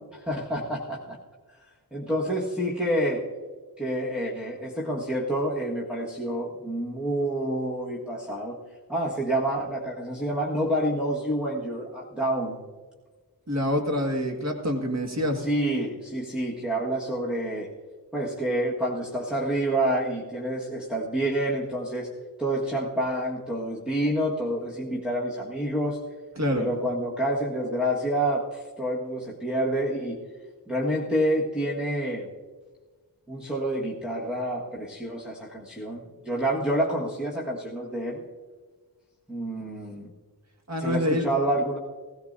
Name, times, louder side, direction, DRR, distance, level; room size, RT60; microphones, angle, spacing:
voice 1, 0.2-1.2 1.9-3.2 3.8-8.6 8.9-12.6 15.4-17.7 18.1-22.1 22.4-26.0 26.5-30.2 30.7-32.3 33.3-38.2 39.3-40.1 40.8-41.8, right 1 dB, ahead, -6 dB, 1.6 m, -28 dB
voice 2, 13.5-15.5 26.4-26.7 40.7-41.2, equal, 40° right, 2 dB, 1.9 m, -26 dB
16.0 x 16.0 x 2.7 m, 1.4 s
wide cardioid pair, 70°, 42 cm